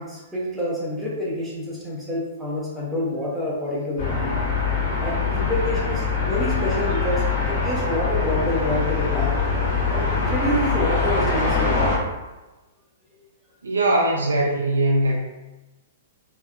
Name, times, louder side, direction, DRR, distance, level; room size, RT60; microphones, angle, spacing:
voice 1, 0.0-4.4 5.0-9.4 9.9-12.0, left 1 dB, 5° right, -7 dB, 0.7 m, -27 dB
sound 1, 4.0-12.0, left 4 dB, 55° left, 0.8 m, -23 dB
voice 2, 13.6-15.1, right 1 dB, 75° right, -2 dB, 0.4 m, -20 dB
3.4 x 2.1 x 2.3 m, 1.1 s
figure-of-eight pair, 110°, 0 cm